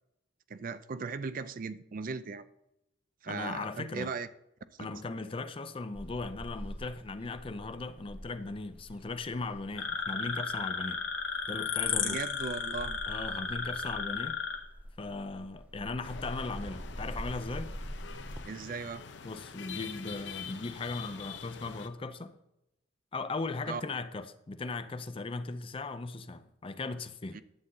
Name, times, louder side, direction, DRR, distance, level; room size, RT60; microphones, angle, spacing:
voice 1, 0.5-2.4 3.2-4.3 4.8-4.9 12.0-13.0 18.5-19.0 23.7-23.8 27.3-27.4, right 4 dB, 45° right, 0.5 m, -38 dB
voice 2, 3.3-4.1 4.8-11.0 11.5-12.2 13.1-14.4 15.0-17.8 19.2-22.4 23.1-27.4, left 3 dB, 30° left, 0.5 m, -38 dB
sound 1, 5.9-18.4, equal, 10° right, 0.7 m, -45 dB
sound 2, 9.8-14.6, left 6 dB, 80° left, 1.6 m, -34 dB
sound 3, 16.0-21.9, left 6 dB, 65° left, 0.7 m, -45 dB
11.0 x 8.0 x 3.8 m
head